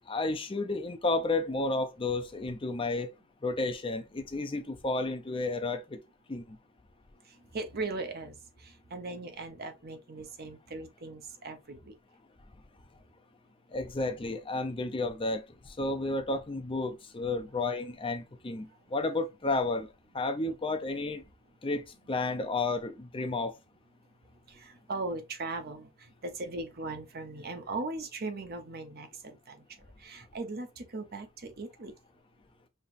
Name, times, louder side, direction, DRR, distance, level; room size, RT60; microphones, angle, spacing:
voice 1, 0.1-3.1 3.4-6.0 6.3-6.6 13.7-19.9 20.1-21.2 21.6-23.5, left 2 dB, 25° left, 0.6 m, -32 dB
voice 2, 7.5-8.4 8.6-11.9 24.5-25.9 26.2-29.6 30.0-31.9, right 3 dB, 45° right, 0.8 m, -38 dB
5.4 x 3.0 x 2.6 m
head